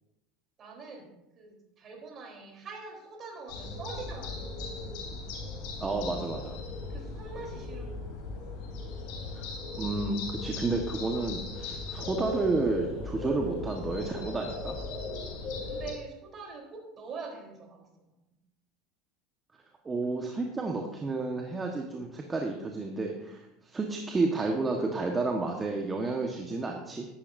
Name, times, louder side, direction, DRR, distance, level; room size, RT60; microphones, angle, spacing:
voice 1, 0.6-5.2 6.9-8.1 15.6-18.1, right 4 dB, 40° right, 1 dB, 3.7 m, -44 dB
sound 1, 3.5-15.9, left 3 dB, 65° left, 3.5 m, -38 dB
voice 2, 5.8-6.6 9.3-9.4 9.8-14.7 19.8-27.1, right 3 dB, 20° right, 1 dB, 1.4 m, -31 dB
13.5 x 11.5 x 2.7 m, 0.91 s
hypercardioid pair, 85°, 0 cm